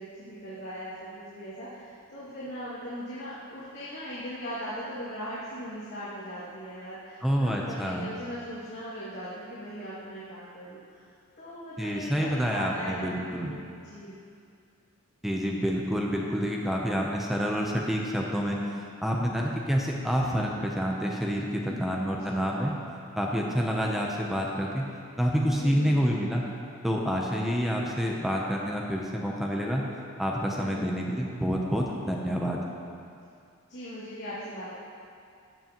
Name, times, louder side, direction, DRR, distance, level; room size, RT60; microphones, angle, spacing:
voice 1, 0.0-11.1 11.4-14.3 21.6-22.6 25.6-26.3 30.5-31.1 33.7-34.7, equal, 55° left, -12 dB, 2.3 m, -39 dB
voice 2, 7.2-8.1 11.8-13.5 15.2-18.6 19.0-22.7 23.2-24.8 25.2-26.4 26.8-29.8 30.2-32.6, equal, ahead, -2 dB, 0.6 m, -28 dB
14.0 x 8.1 x 3.0 m, 2.4 s
head